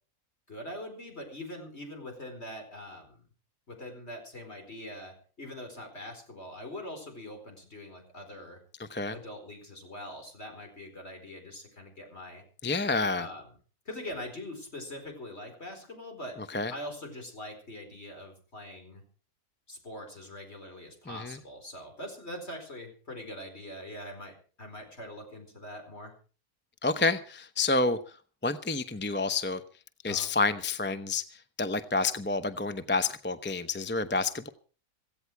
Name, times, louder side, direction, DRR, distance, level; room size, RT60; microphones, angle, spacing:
voice 1, 0.5-3.2 3.7-8.6 9.1-12.4 13.2-13.4 13.8-16.4 16.7-19.0 19.7-26.1 30.0-30.3, left 1 dB, 45° left, 4 dB, 4.9 m, -43 dB
voice 2, 8.8-9.1 12.6-13.3 16.5-16.7 21.1-21.4 26.8-28.0 28.4-29.6 30.0-34.5, left 3 dB, 10° left, 11 dB, 0.5 m, -29 dB
16.5 x 16.0 x 4.7 m, 0.38 s
omnidirectional pair, 1.5 m